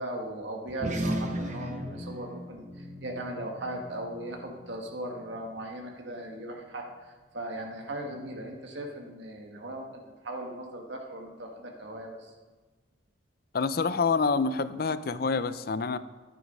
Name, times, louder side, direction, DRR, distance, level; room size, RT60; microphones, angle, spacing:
voice 1, 0.0-6.9 7.3-9.9 10.2-12.3, right 1 dB, 75° right, 2 dB, 1.4 m, -38 dB
sound 1, 0.7-5.5, equal, 40° right, 1.0 m, -36 dB
voice 2, 13.5-16.0, left 4 dB, 55° left, 14 dB, 0.5 m, -27 dB
11.5 x 9.2 x 5.3 m, 1.3 s
head